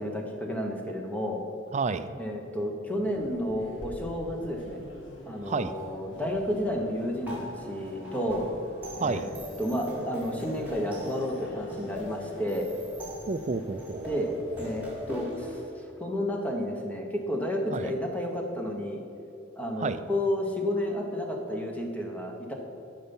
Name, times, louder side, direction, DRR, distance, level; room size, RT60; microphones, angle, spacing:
voice 1, 0.0-1.4 2.2-4.8 5.2-8.5 9.0-9.3 9.6-12.7 14.0-19.0 19.6-22.5, equal, 10° left, 1 dB, 1.1 m, -31 dB
voice 2, 1.7-2.1 5.4-5.7 9.0-9.3 13.3-14.1 17.7-17.9 19.8-20.0, right 4 dB, 35° right, 12 dB, 0.4 m, -30 dB
sound 1, 3.0-15.2, equal, 70° left, 1.5 m, -47 dB
sound 2, 7.3-15.6, equal, 10° right, 2.1 m, -41 dB
13.0 x 5.7 x 5.4 m, 2.9 s
head